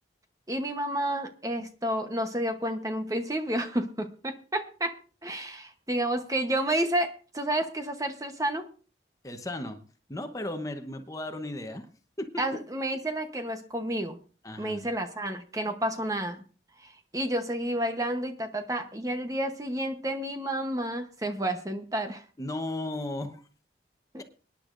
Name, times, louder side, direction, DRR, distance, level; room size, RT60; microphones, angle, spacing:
voice 1, 0.5-5.0 5.2-8.7 12.4-14.2 14.6-16.4 16.8-22.2 24.1-24.2, right 1 dB, 20° right, 6 dB, 0.9 m, -30 dB
voice 2, 9.2-9.8 10.1-11.9 12.2-12.4 14.4-14.8 22.4-23.4, left 1 dB, 20° left, 7 dB, 1.0 m, -35 dB
24.5 x 10.0 x 2.6 m, 0.38 s
head